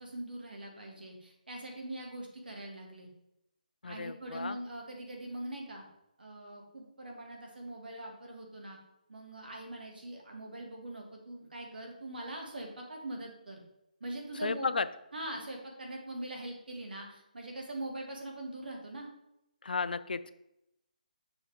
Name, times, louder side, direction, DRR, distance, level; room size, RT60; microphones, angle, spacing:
voice 1, 0.0-3.1 3.9-5.8 6.2-8.8 9.1-13.6 14.0-14.7 15.1-19.1, right 1 dB, 80° right, 1 dB, 1.9 m, -42 dB
voice 2, 3.8-4.6 14.4-14.9 19.6-20.3, left 4 dB, 75° left, 13 dB, 0.4 m, -33 dB
6.3 x 3.4 x 4.8 m, 0.84 s
hypercardioid pair, 170°, 5 cm